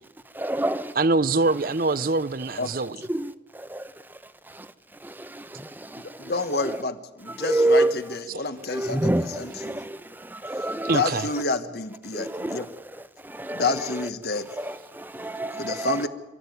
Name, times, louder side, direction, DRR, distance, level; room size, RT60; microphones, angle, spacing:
voice 1, 0.3-0.9 3.1-3.9 4.5-4.7 5.0-6.3 6.6-6.8 7.3-8.1 8.7-11.4 12.1-12.7 13.2-14.1 14.6-16.0, right 1 dB, 10° right, 0.8 m, -28 dB
voice 2, 1.0-3.0 10.8-11.3, right 3 dB, 55° right, 0.7 m, -23 dB
voice 3, 6.0-9.8 10.9-12.7 13.5-14.5 15.6-16.1, left 3 dB, 60° left, 1.5 m, -29 dB
28.5 x 13.5 x 9.4 m
head